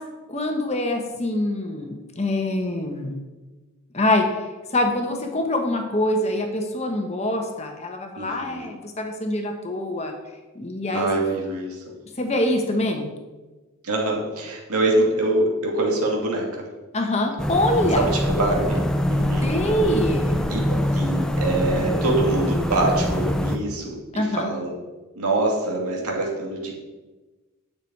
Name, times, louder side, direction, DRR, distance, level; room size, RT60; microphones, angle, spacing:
voice 1, 0.3-3.2 3.9-4.3 4.7-10.1 10.5-11.1 12.2-13.1 16.9-18.1 19.4-20.4 24.1-24.5, left 1 dB, 30° left, 4 dB, 1.1 m, -24 dB
voice 2, 8.2-8.7 10.9-11.8 13.8-16.7 18.0-19.5 20.5-20.6 20.9-24.7 25.1-26.7, right 2 dB, 90° right, -1 dB, 2.4 m, -24 dB
sound 1, 17.4-23.6, equal, 5° left, 0.5 m, -24 dB
9.9 x 7.0 x 4.7 m, 1.2 s
head